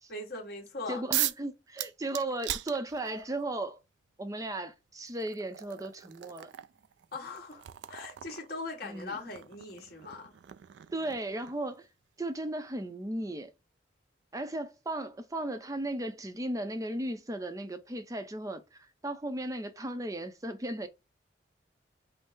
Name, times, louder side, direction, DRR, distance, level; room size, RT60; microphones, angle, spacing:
voice 1, 0.1-1.0 7.1-10.3, left 3 dB, 55° left, 1.5 m, -40 dB
voice 2, 0.9-3.8 4.2-6.5 8.8-9.2 10.9-11.9 12.2-13.5 14.3-20.9, right 1 dB, 20° right, 0.6 m, -36 dB
sound 1, 1.1-1.5 1.8-3.3 4.4-4.5 5.1-11.7, right 13 dB, 70° right, 0.3 m, -38 dB
5.5 x 2.0 x 4.0 m
head